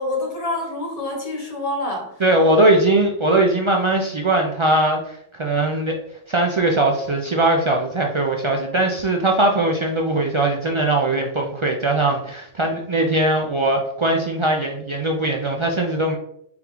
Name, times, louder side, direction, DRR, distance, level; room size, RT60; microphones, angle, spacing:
voice 1, 0.0-2.2, left 2 dB, 40° left, -1 dB, 1.0 m, -27 dB
voice 2, 2.2-6.0 6.3-16.2, right 2 dB, 50° right, 1 dB, 0.3 m, -20 dB
3.8 x 3.4 x 3.0 m, 0.72 s
omnidirectional pair, 1.1 m